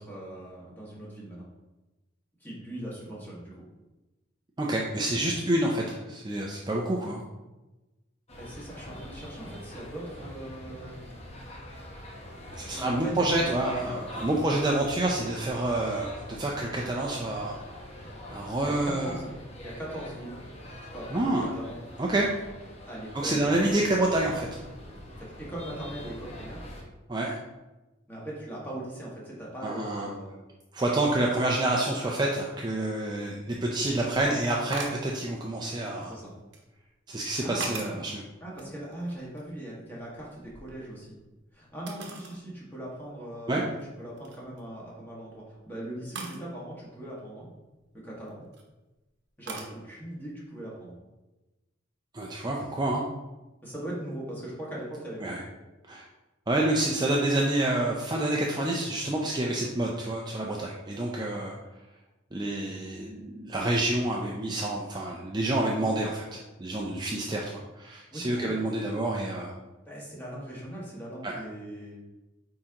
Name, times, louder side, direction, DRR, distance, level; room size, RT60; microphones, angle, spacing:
voice 1, 0.0-1.5 2.4-3.7 8.4-11.0 12.7-14.6 18.4-19.4 19.6-20.4 20.9-21.8 22.8-24.1 25.1-26.7 28.1-30.4 36.0-36.3 37.4-38.1 38.4-41.2 41.5-47.5 47.9-48.4 49.4-51.0 53.6-55.4 68.1-68.6 69.9-72.0, right 1 dB, 10° left, -5 dB, 1.7 m, -40 dB
voice 2, 4.6-7.2 12.5-17.6 18.3-19.1 21.1-21.4 22.0-22.3 23.1-24.5 27.1-27.4 29.6-30.1 30.7-36.1 37.1-38.2 43.5-43.6 52.1-53.0 55.2-55.4 55.9-56.1 56.5-61.5 62.3-69.5 71.2-71.3, right 1 dB, 20° right, -2 dB, 0.5 m, -28 dB
sound 1, 8.3-26.8, left 1 dB, 35° left, 1.0 m, -44 dB
sound 2, 34.7-35.1 35.8-36.6 37.3-38.1 38.5-39.6 39.9-41.2 41.9-42.4 42.9-43.0 43.6-43.8 44.2-44.6 46.2-46.4 48.1-48.6 49.5-49.8, right 4 dB, 60° right, 1.0 m, -40 dB
8.6 x 3.7 x 2.9 m, 1.1 s
head